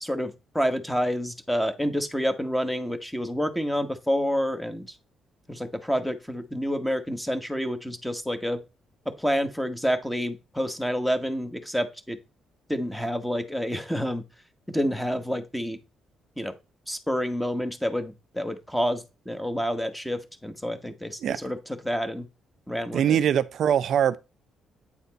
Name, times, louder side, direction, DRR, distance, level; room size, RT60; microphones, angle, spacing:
voice 1, 0.0-5.0 5.5-8.6 9.0-12.2 12.7-14.2 14.7-15.8 16.4-16.5 16.9-21.6 21.8-22.2 22.7-23.2, equal, 5° left, 1.1 m, -28 dB
voice 2, 22.9-24.2, right 9 dB, 65° right, 0.4 m, -22 dB
8.6 x 4.2 x 4.0 m
cardioid pair, 90°, 0 cm